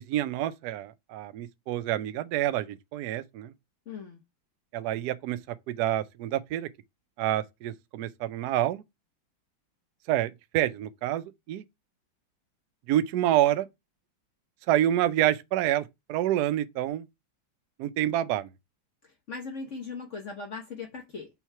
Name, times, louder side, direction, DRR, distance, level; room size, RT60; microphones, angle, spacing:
voice 1, 0.0-3.5 4.7-5.4 5.7-6.7 7.2-8.8 10.1-11.6 12.9-13.7 14.7-17.0 17.8-18.5, right 12 dB, 70° right, 1.0 m, -27 dB
voice 2, 3.9-4.2 19.3-21.3, left 4 dB, 50° left, 1.1 m, -38 dB
5.6 x 3.0 x 5.6 m
omnidirectional pair, 2.1 m